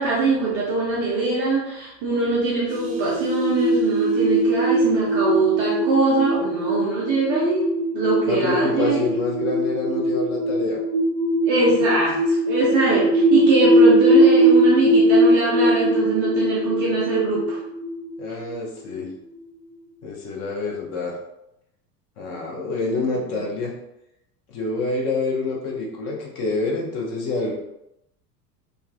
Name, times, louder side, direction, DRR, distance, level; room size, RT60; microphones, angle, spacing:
voice 1, 0.0-7.7 7.9-9.1 11.5-17.6 23.3-23.4, right 3 dB, 25° right, -6 dB, 0.4 m, -22 dB
sound 1, 2.7-19.0, right 1 dB, 65° right, 0.8 m, -20 dB
voice 2, 8.3-10.8 18.2-19.1 20.0-21.2 22.2-23.7 24.5-27.6, left 3 dB, 30° left, -2 dB, 0.7 m, -27 dB
3.1 x 2.3 x 2.4 m, 0.84 s
figure-of-eight pair, 85°, 49 cm